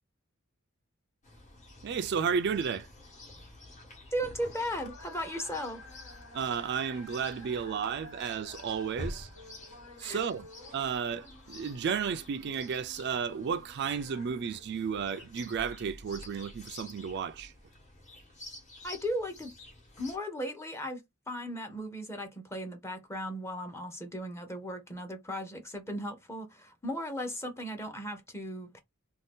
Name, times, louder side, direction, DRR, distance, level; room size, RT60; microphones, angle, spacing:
Chirp tweet, 1.2-20.2, left 1 dB, 35° left, 1.1 m, -49 dB
voice 1, 1.8-2.9 6.3-9.3 10.0-10.5 10.7-17.5, right 6 dB, 50° right, 0.3 m, -33 dB
sound 1, 2.4-14.6, left 2 dB, 75° left, 1.5 m, -53 dB
voice 2, 4.1-5.8 10.0-10.2 18.8-19.5 20.0-28.8, equal, 10° left, 0.7 m, -36 dB
2.7 x 2.3 x 3.4 m
head